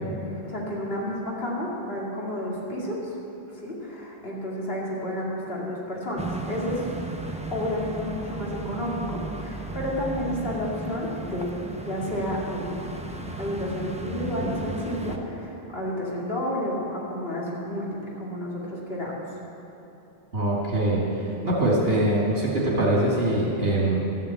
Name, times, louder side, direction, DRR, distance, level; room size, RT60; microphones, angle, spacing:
voice 1, 0.0-3.1 3.5-6.9 7.5-11.5 11.8-13.0 13.4-19.1, left 1 dB, 65° left, -5 dB, 2.5 m, -31 dB
sound 1, 6.2-15.2, right 2 dB, 10° right, 0.6 m, -35 dB
voice 2, 20.3-24.0, right 1 dB, 65° right, -6 dB, 2.3 m, -23 dB
13.5 x 7.4 x 8.2 m, 3.0 s
omnidirectional pair, 1.1 m